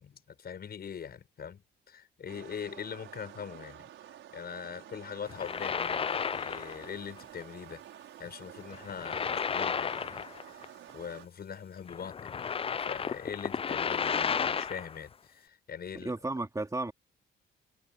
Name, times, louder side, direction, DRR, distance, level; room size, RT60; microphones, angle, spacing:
voice 1, 0.0-1.6 1.9-3.9 4.3-7.8 8.2-10.3 10.6-16.1, left 7 dB, 50° left, 5.8 m, -42 dB
sound 1, 2.3-11.3, right 11 dB, 80° right, 5.8 m, -50 dB
sound 2, 5.3-6.9 7.2-7.4 8.7-10.7 10.9-11.0 11.9-15.0, left 6 dB, 30° left, 0.4 m, -33 dB
voice 2, 15.9-16.9, right 2 dB, 15° right, 2.9 m, -33 dB
cardioid pair, 90°, 20 cm